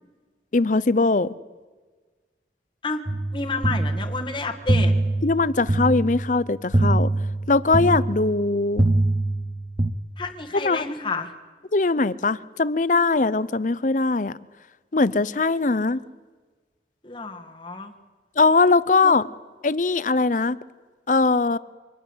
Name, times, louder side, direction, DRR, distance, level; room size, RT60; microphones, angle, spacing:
voice 1, 0.5-1.3 5.2-7.1 7.5-8.9 10.5-10.8 11.7-14.4 14.9-16.0 18.4-19.3 19.6-20.6 21.1-21.6, left 3 dB, 45° left, 18 dB, 0.7 m, -21 dB
sound 1, 3.1-9.9, right 2 dB, 25° right, 0.8 m, -24 dB
voice 2, 3.3-4.9 10.2-11.3 15.7-16.0 17.0-17.9 19.0-19.1, left 3 dB, 25° left, 4 dB, 1.8 m, -30 dB
24.5 x 19.5 x 8.0 m, 1.3 s
head